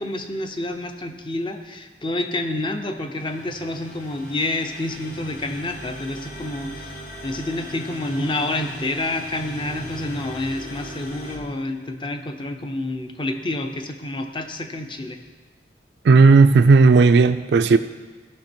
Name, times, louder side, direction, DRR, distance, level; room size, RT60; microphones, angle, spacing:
voice 1, 0.0-15.2, left 2 dB, 25° left, 6 dB, 0.6 m, -28 dB
sound 1, 3.2-11.4, left 1 dB, 50° left, 1.4 m, -39 dB
voice 2, 16.0-17.8, right 4 dB, 65° right, 10 dB, 0.3 m, -13 dB
15.0 x 6.0 x 4.4 m, 1.3 s
head